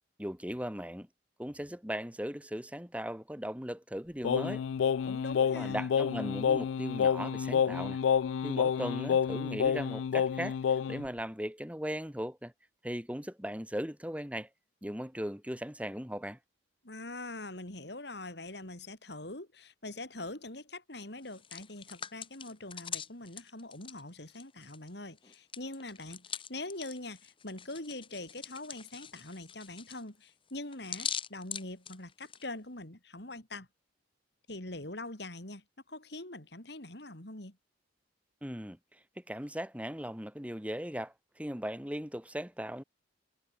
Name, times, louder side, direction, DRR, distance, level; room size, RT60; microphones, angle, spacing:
voice 1, 0.2-1.1 1.4-4.7 5.6-8.0 8.4-10.6 10.9-12.5 12.8-14.5 14.8-16.4 38.4-42.8, equal, 5° right, 3.0 m, -38 dB
Singing, 4.2-11.1, left 7 dB, 85° left, 0.3 m, -29 dB
voice 2, 5.0-5.9 16.8-33.7 34.5-37.6, left 2 dB, 60° left, 3.7 m, -43 dB
Hands, 21.2-24.9 25.2-32.4, left 8 dB, 25° left, 3.4 m, -43 dB
head